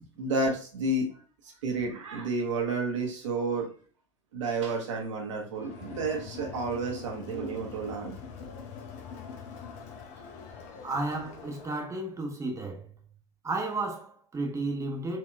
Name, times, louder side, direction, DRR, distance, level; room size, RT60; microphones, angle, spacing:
voice 1, 0.2-1.1 1.4-3.7 4.3-8.2, right 3 dB, 70° right, 1.2 m, -31 dB
Crowd, 5.6-11.9, left 6 dB, 50° left, 0.9 m, -44 dB
voice 2, 10.8-12.9 13.4-15.2, right 2 dB, 20° right, 1.0 m, -33 dB
4.4 x 2.8 x 2.3 m
figure-of-eight pair, 80°, 16 cm